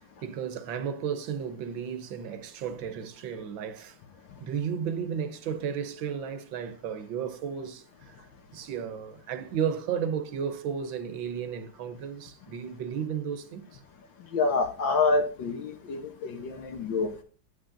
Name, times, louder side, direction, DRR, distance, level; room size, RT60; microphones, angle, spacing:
voice 1, 0.2-4.0 4.4-8.3 8.5-13.8, right 7 dB, 80° right, 1.7 m, -33 dB
voice 2, 14.3-17.2, left 3 dB, 75° left, 1.7 m, -27 dB
9.7 x 8.5 x 2.6 m
omnidirectional pair, 2.1 m